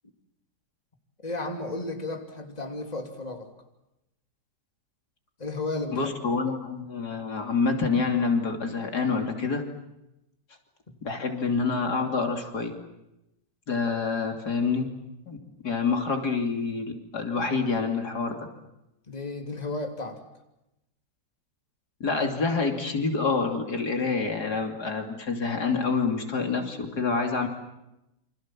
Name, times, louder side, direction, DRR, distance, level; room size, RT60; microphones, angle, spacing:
voice 1, 1.2-3.5 5.4-6.1 10.9-11.0 19.1-20.2, left 2 dB, 25° left, 4 dB, 3.1 m, -33 dB
voice 2, 5.9-9.6 11.0-12.7 13.7-14.9 15.3-15.4 15.6-18.5 22.0-27.5, left 4 dB, 70° left, 4 dB, 3.5 m, -27 dB
29.0 x 26.0 x 7.6 m, 0.90 s
omnidirectional pair, 1.8 m